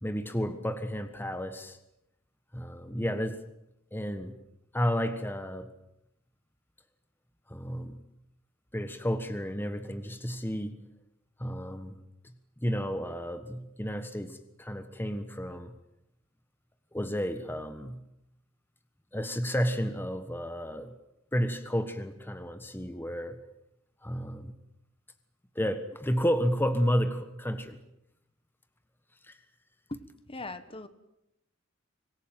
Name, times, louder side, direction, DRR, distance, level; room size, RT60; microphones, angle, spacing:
voice 1, 0.0-1.8 2.5-3.4 3.9-4.4 4.7-5.7 7.5-8.0 8.7-10.8 11.4-12.0 12.6-15.7 16.9-18.0 19.1-20.9 21.3-23.4 24.0-24.5 25.5-27.8 29.2-29.4, equal, 10° left, 9 dB, 1.4 m, -31 dB
voice 2, 29.9-30.9, left 2 dB, 25° left, 12 dB, 1.5 m, -40 dB
25.5 x 20.0 x 9.2 m, 0.83 s
head